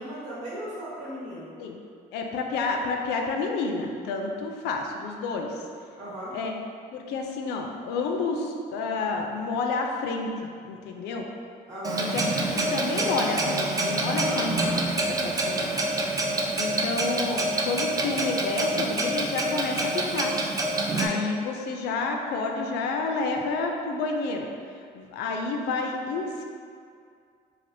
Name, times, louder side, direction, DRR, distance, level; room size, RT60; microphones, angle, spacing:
voice 1, 0.0-1.6 6.0-6.4 11.7-12.1 14.0-14.4, equal, 45° right, -9 dB, 1.0 m, -37 dB
voice 2, 2.1-5.6 6.3-6.5 6.9-11.3 12.0-15.9 16.5-20.3 20.9-24.5 24.9-26.4, left 3 dB, 85° left, 2 dB, 0.4 m, -30 dB
Clock, 11.8-21.1, right 2 dB, 20° right, 0.3 m, -27 dB
3.3 x 2.4 x 2.6 m, 2.3 s
cardioid pair, 110°, 17 cm